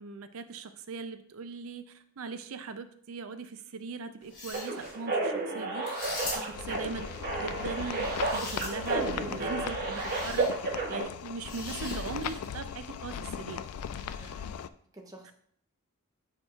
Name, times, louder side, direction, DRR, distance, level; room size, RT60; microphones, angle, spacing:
voice 1, 0.0-5.9 6.3-7.1 7.3-10.5 10.9-13.6 14.0-14.5, right 4 dB, 70° right, 10 dB, 0.5 m, -40 dB
sound 1, 4.2-4.9 5.8-6.7 7.9-9.0 10.0-10.5 11.4-12.5, left 2 dB, 35° left, 2.3 m, -41 dB
sound 2, 4.5-11.0, right 3 dB, 40° right, 1.6 m, -32 dB
voice 2, 6.3-6.6 14.1-14.3 14.6-15.3, right 1 dB, 15° right, 2 dB, 0.8 m, -51 dB
sound 3, 6.5-14.7, left 7 dB, 85° left, 0.3 m, -38 dB
8.5 x 4.7 x 2.4 m, 0.62 s
head